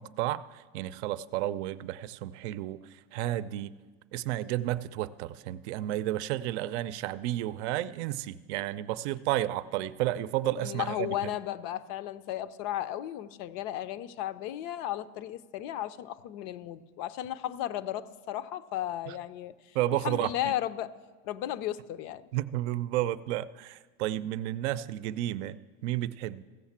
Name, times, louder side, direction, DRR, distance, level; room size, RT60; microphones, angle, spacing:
voice 1, 0.0-3.7 4.1-11.3 19.1-19.2 19.7-20.5 22.3-25.6 25.8-26.4, right 14 dB, 85° right, 14 dB, 0.6 m, -32 dB
voice 2, 10.6-19.5 20.0-20.9 21.2-22.3, left 12 dB, 55° left, 14 dB, 0.5 m, -34 dB
15.5 x 6.5 x 7.2 m, 1.4 s
cardioid pair, 160°, 33 cm